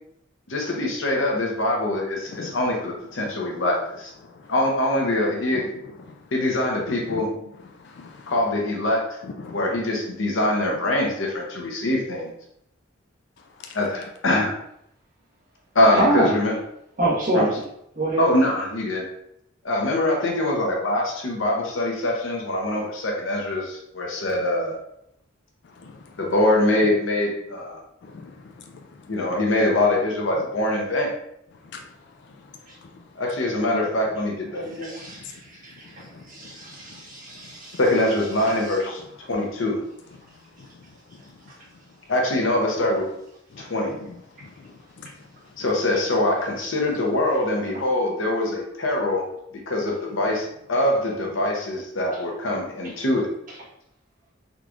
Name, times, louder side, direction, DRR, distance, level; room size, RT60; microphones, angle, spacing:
voice 1, 0.5-4.1 4.5-5.7 6.3-7.3 8.3-9.0 9.5-12.3 13.7-14.5 15.7-16.6 17.3-17.6 18.2-19.1 19.6-24.8 26.2-27.8 29.1-31.1 33.2-34.9 37.8-39.8 42.1-43.1 43.6-44.0 45.6-49.2 49.7-53.3, left 1 dB, 80° left, 0.9 m, -23 dB
voice 2, 6.9-7.3 7.8-8.3 9.2-9.5 25.8-26.0 28.0-28.9 31.7-31.8 33.7-33.8 36.1-36.2 40.6-40.7 44.0-44.1 44.4-45.1, left 4 dB, 60° left, 0.3 m, -39 dB
voice 3, 15.9-16.4 17.0-17.7 17.9-18.3 32.7-32.8 34.8-37.8 38.6-38.7 47.7-47.8, right 2 dB, 45° right, 1.3 m, -26 dB
3.8 x 3.0 x 2.4 m
head